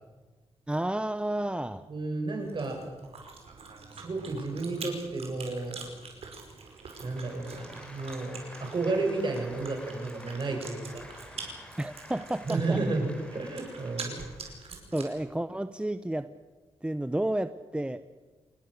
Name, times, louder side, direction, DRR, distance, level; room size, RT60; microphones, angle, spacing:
voice 1, 0.7-1.8 11.8-12.8 14.9-16.3 16.8-18.0, right 1 dB, 10° right, 12 dB, 0.8 m, -31 dB
voice 2, 1.9-2.8 4.0-5.8 7.0-11.1 12.5-14.2 14.7-14.8, right 3 dB, 45° right, 3 dB, 7.2 m, -32 dB
Chewing mastication, 2.4-15.2, right 4 dB, 70° right, 5.4 m, -45 dB
sound 1, 6.7-14.7, left 1 dB, 10° left, 4.9 m, -49 dB
27.5 x 20.0 x 6.8 m, 1.3 s
cardioid pair, 85°, 11 cm